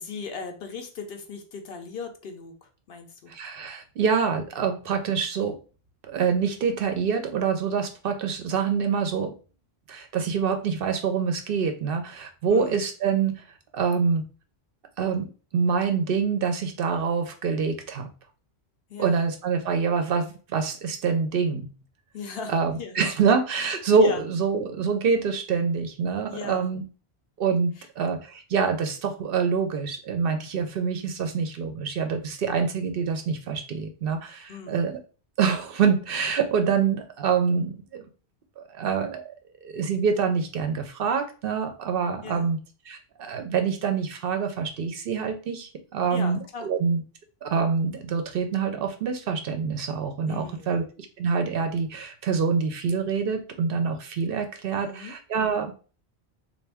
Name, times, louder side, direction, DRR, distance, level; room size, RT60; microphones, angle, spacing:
voice 1, 0.0-3.3 12.5-12.8 18.9-19.3 22.1-23.0 24.0-24.2 26.3-26.7 34.5-34.8 42.2-42.5 46.1-46.7 50.3-50.8 54.7-55.1, left 5 dB, 65° left, 4 dB, 0.8 m, -38 dB
voice 2, 3.3-5.6 6.1-9.3 9.9-13.5 13.7-14.2 15.0-15.3 15.5-18.1 19.0-21.8 22.5-26.8 27.4-35.0 35.4-38.1 38.6-39.3 39.6-42.6 42.9-47.0 47.4-55.7, right 6 dB, 65° right, 6 dB, 0.7 m, -26 dB
3.3 x 2.5 x 3.3 m, 0.36 s
omnidirectional pair, 1.1 m